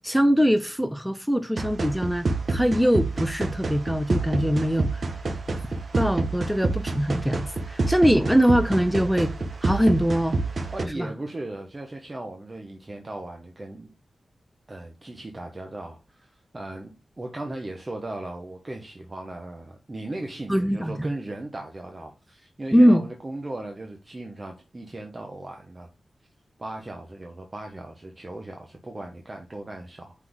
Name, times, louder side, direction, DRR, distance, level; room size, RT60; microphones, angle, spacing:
voice 1, 0.0-5.1 5.9-9.3 9.6-10.4 11.0-11.1 20.5-21.1 22.7-23.0, equal, ahead, 0.4 m, -22 dB
sound 1, 1.6-10.8, right 3 dB, 45° right, 1.1 m, -28 dB
voice 2, 10.7-13.9 14.7-25.9 26.6-30.1, right 2 dB, 25° right, 1.0 m, -37 dB
5.8 x 4.0 x 6.0 m
wide cardioid pair, 175°, 0 cm